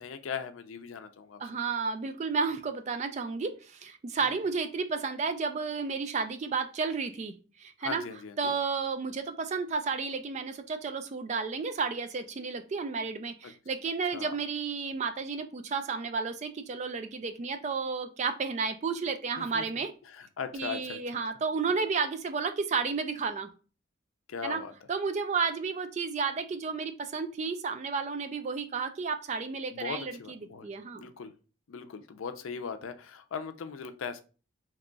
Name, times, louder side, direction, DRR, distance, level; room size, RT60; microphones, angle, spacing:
voice 1, 0.0-1.4 4.2-4.4 7.8-8.5 13.4-13.5 14.1-14.4 19.4-19.6 20.1-21.2 24.3-24.7 29.7-30.7 30.9-31.3 31.7-34.2, left 6 dB, 85° left, 9 dB, 0.4 m, -39 dB
voice 2, 1.4-8.0 8.4-19.9 20.5-23.5 24.4-24.6 24.9-31.1, right 5 dB, 35° right, 9 dB, 0.3 m, -32 dB
2.9 x 2.2 x 3.8 m, 0.35 s
head